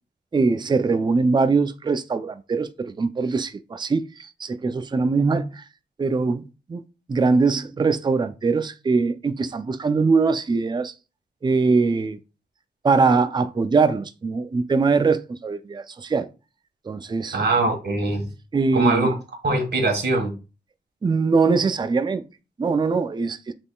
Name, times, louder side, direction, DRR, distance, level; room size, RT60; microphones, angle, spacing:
voice 1, 0.3-5.6 6.0-6.8 7.1-10.9 11.4-12.2 12.8-16.3 16.9-17.4 18.5-19.1 21.0-22.2 22.6-23.5, right 4 dB, 25° right, 0.4 m, -22 dB
voice 2, 17.3-18.3 18.7-19.1 19.4-20.3, right 3 dB, 70° right, 1.5 m, -22 dB
6.2 x 3.6 x 2.3 m
wide cardioid pair, 120°, 18 cm